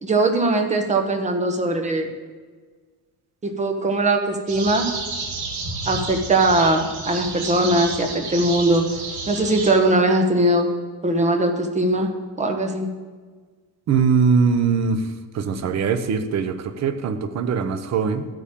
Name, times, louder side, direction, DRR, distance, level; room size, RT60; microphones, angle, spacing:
voice 1, 0.0-2.1 3.4-4.9 5.9-8.9 9.3-10.7 11.0-12.9, right 2 dB, 20° right, 4 dB, 1.0 m, -20 dB
sound 1, 4.5-9.7, right 3 dB, 75° right, 2.5 m, -31 dB
voice 2, 13.9-15.1 15.3-18.3, right 5 dB, 45° right, 9 dB, 0.8 m, -21 dB
13.5 x 8.5 x 3.7 m, 1.4 s
cardioid pair, 170°, 37 cm